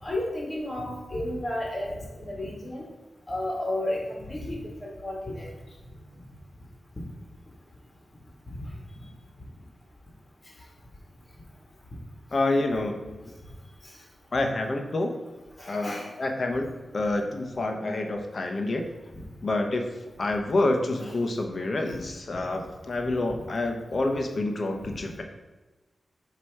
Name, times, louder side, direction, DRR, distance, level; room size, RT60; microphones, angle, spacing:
voice 1, 0.0-2.9 3.3-5.5 8.5-8.7 15.6-16.1 19.1-19.2 21.0-21.1, left 1 dB, 30° left, -1 dB, 1.7 m, -32 dB
voice 2, 12.3-13.3 14.3-15.2 15.7-18.8 19.4-19.8 20.2-25.2, left 2 dB, 50° left, 4 dB, 0.9 m, -28 dB
7.4 x 3.0 x 4.7 m, 1.2 s
wide cardioid pair, 85°, 0 cm